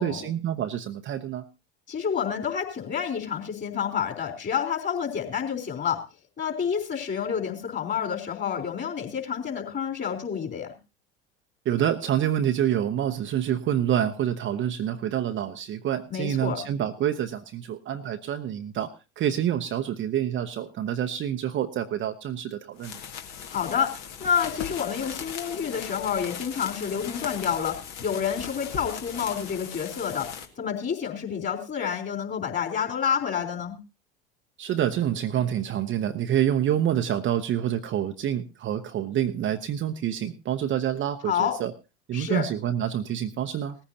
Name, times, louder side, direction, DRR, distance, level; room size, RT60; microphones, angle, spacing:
voice 1, 0.0-1.4 11.6-18.9 19.2-23.0 34.6-41.7 42.1-43.7, right 10 dB, 35° right, 7 dB, 0.9 m, -27 dB
voice 2, 1.9-6.0 6.4-10.7 16.1-16.6 23.5-23.9 24.2-30.3 30.6-33.8 41.3-41.6 42.1-42.5, left 7 dB, 30° left, 3 dB, 3.9 m, -29 dB
sound 1, 22.8-30.5, left 7 dB, 55° left, 2.0 m, -38 dB
18.5 x 14.5 x 2.8 m, 0.29 s
figure-of-eight pair, 80°, 34 cm